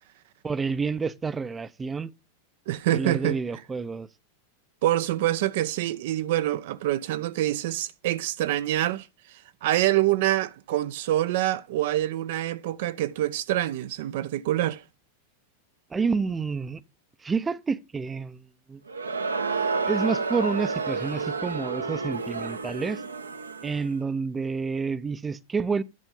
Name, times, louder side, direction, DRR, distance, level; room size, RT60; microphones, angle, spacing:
voice 1, 0.4-2.1 2.9-4.1 15.9-16.8 17.2-18.8 19.9-23.0 23.6-25.8, right 5 dB, 15° right, 0.7 m, -29 dB
voice 2, 2.7-3.4 4.8-9.1 9.6-14.8, right 14 dB, 55° right, 0.6 m, -26 dB
Crowd, 18.9-23.9, right 4 dB, 75° right, 0.9 m, -30 dB
11.0 x 4.4 x 5.4 m
figure-of-eight pair, 90°, 0 cm